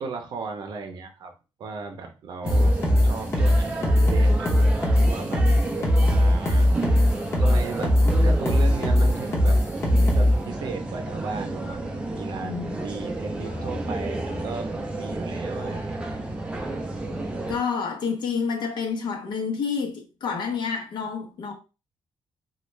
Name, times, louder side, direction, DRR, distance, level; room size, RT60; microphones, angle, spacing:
voice 1, 0.0-1.3 1.6-2.7 3.0-4.7 5.0-5.5 6.0-6.7 7.4-9.6 9.8-11.8 12.1-12.6 12.8-16.2, right 4 dB, 55° right, 0.6 m, -36 dB
sound 1, 2.4-17.6, right 2 dB, 10° right, 0.4 m, -31 dB
sound 2, 2.5-10.4, left 1 dB, 30° left, 0.8 m, -19 dB
voice 2, 12.4-12.9 13.4-13.7 15.6-15.8 17.5-21.5, left 5 dB, 60° left, 0.8 m, -29 dB
3.2 x 2.3 x 3.2 m
wide cardioid pair, 180°, 9 cm